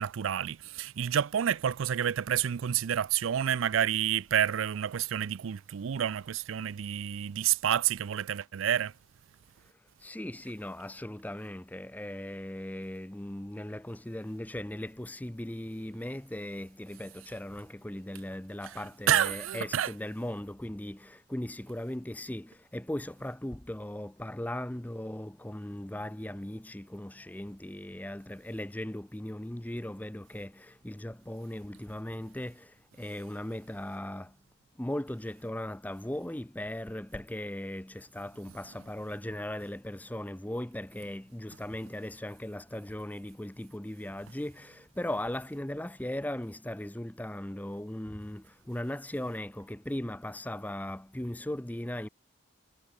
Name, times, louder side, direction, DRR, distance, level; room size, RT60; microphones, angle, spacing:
voice 1, 0.0-8.9 19.1-19.9, right 9 dB, 90° right, 0.4 m, -29 dB
voice 2, 9.6-34.4 34.8-52.1, left 1 dB, 10° left, 0.6 m, -38 dB
head